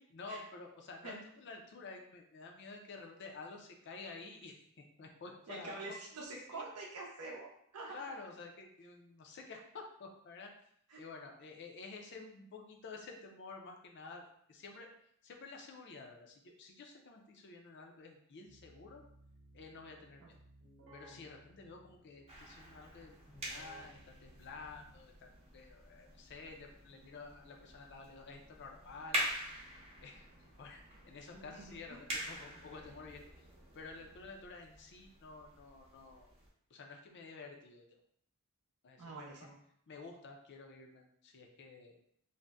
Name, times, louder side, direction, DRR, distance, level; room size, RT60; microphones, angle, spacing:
voice 1, 0.1-5.8 6.5-6.6 7.9-10.5 11.0-14.9 15.2-19.0 19.5-20.4 20.9-29.3 30.0-30.3 30.6-33.5 33.7-36.3 36.7-38.0 38.8-39.5 39.9-42.0, left 4 dB, 50° left, 2 dB, 0.5 m, -51 dB
voice 2, 5.5-8.1 10.9-11.0 20.2-20.3 31.3-32.0 39.0-39.5, right 3 dB, 85° right, -2 dB, 0.6 m, -46 dB
Keyboard (musical), 18.4-25.3, right 1 dB, 55° right, 0.8 m, -61 dB
sound 1, 22.3-36.5, equal, 25° right, 0.6 m, -45 dB
2.6 x 2.1 x 3.4 m, 0.68 s
head